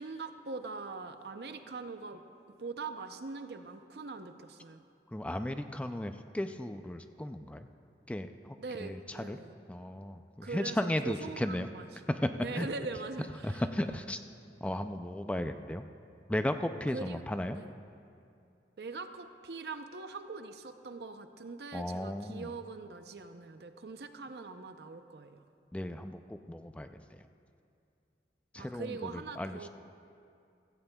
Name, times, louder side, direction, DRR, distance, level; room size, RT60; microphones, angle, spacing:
voice 1, 0.0-2.2 2.6-4.8 8.6-9.5 10.4-11.8 12.4-13.6 13.9-14.0 16.9-17.2 17.6-17.7 18.8-25.4 28.5-29.7, right 4 dB, 70° right, 8 dB, 0.6 m, -42 dB
voice 2, 5.1-7.7 8.1-9.4 9.7-11.7 12.1-12.7 13.4-14.2 14.6-15.9 16.3-17.6 21.7-22.5 25.7-27.2 28.5-29.7, left 1 dB, 5° left, 8 dB, 0.3 m, -35 dB
16.0 x 15.5 x 2.3 m, 2.5 s
head